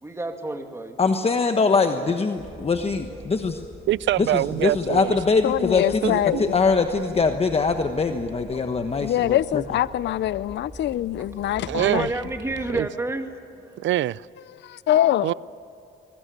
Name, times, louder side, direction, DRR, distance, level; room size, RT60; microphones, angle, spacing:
voice 1, 0.0-1.0 11.6-13.3 13.6-13.8, right 2 dB, 15° right, 5 dB, 2.2 m, -30 dB
voice 2, 1.0-3.6 4.3-9.6, left 4 dB, 30° left, 7 dB, 1.2 m, -23 dB
sound 1, 2.4-12.8, left 1 dB, 5° left, 2.1 m, -43 dB
voice 3, 3.9-5.2 6.0-6.5 11.7-12.1 12.7-12.9 13.8-14.3 15.2-15.3, right 14 dB, 70° right, 22 dB, 0.5 m, -24 dB
voice 4, 5.4-6.6 8.5-8.6 9.0-12.1 14.6-15.3, left 12 dB, 65° left, 18 dB, 0.5 m, -24 dB
22.0 x 20.0 x 9.2 m, 2.7 s
cardioid pair, 90°, 20 cm